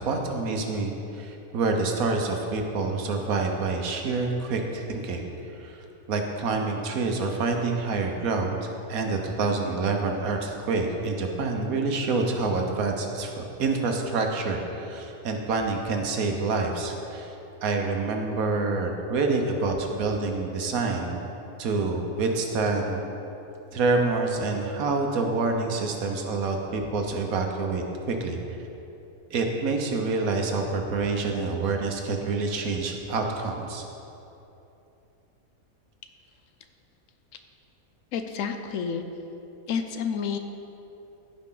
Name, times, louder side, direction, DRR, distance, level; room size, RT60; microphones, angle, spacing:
voice 1, 0.0-5.2 5.6-5.7 6.1-8.6 8.9-17.3 17.6-21.2 21.6-23.0 23.7-28.4 29.3-33.8, right 3 dB, 85° right, 3 dB, 1.4 m, -27 dB
voice 2, 38.1-39.0 39.7-40.4, left 6 dB, 70° left, 7 dB, 0.9 m, -29 dB
14.5 x 5.0 x 3.8 m, 2.9 s
omnidirectional pair, 1.5 m